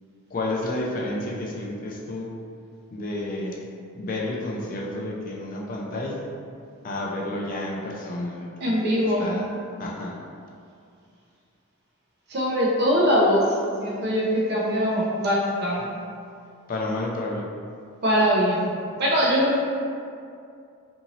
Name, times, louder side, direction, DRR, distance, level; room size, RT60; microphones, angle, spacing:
voice 1, 0.3-2.3 2.9-3.6 3.9-6.3 6.8-9.5 9.8-10.2 16.7-17.5, left 1 dB, 40° left, -3 dB, 0.3 m, -31 dB
voice 2, 8.6-9.3 12.3-15.8 18.0-18.7 19.0-19.6, equal, 50° right, -4 dB, 0.6 m, -22 dB
2.6 x 2.6 x 2.9 m, 2.4 s
head